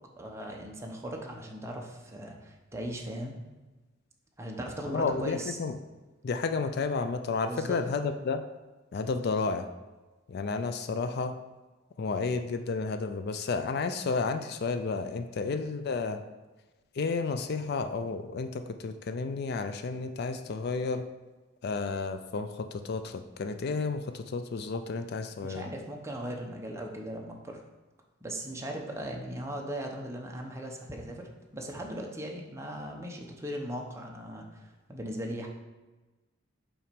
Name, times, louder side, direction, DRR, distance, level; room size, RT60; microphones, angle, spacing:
voice 1, 0.2-3.3 4.4-5.6 7.5-7.8 25.4-27.6 28.2-35.5, equal, 15° right, 0 dB, 0.9 m, -38 dB
voice 2, 4.9-5.7 6.2-8.4 8.9-9.7 10.3-11.4 12.0-16.2 16.9-21.0 21.6-25.7, left 4 dB, 55° left, 8 dB, 0.4 m, -31 dB
5.6 x 4.3 x 5.1 m, 1.2 s
head